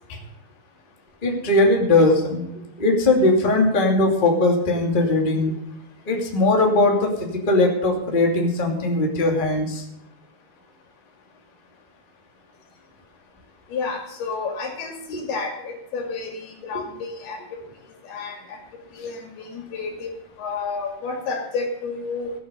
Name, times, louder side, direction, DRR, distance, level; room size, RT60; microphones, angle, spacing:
voice 1, 1.2-2.4 2.8-5.5 6.1-9.8 16.7-16.8, left 2 dB, 15° left, 0 dB, 2.2 m, -19 dB
voice 2, 13.7-17.4 18.0-18.6 18.9-22.3, left 4 dB, 75° left, 3 dB, 4.3 m, -31 dB
16.5 x 8.8 x 6.8 m, 0.81 s
omnidirectional pair, 4.5 m